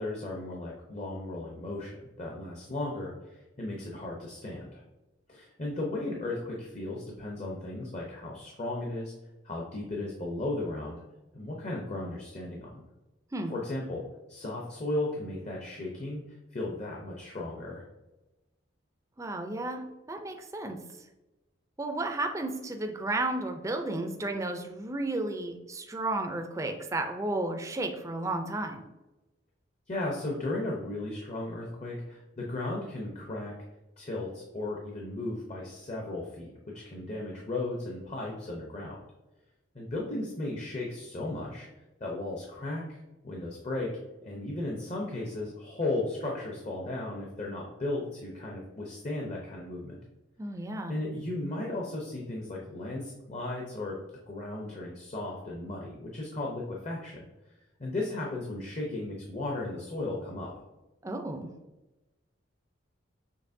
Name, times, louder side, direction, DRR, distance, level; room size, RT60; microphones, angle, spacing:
voice 1, 0.0-4.8 5.3-9.1 9.4-11.0 11.3-12.8 13.5-17.8 29.9-33.5 34.0-39.0 39.7-41.7 42.0-43.9 44.2-50.0 50.9-54.0 54.3-57.3 57.8-60.5, left 2 dB, 35° left, -1 dB, 0.7 m, -35 dB
voice 2, 19.2-20.8 21.8-28.8 50.4-50.9 61.0-61.5, right 2 dB, 15° right, 4 dB, 0.4 m, -33 dB
6.5 x 3.1 x 2.6 m, 1.0 s
head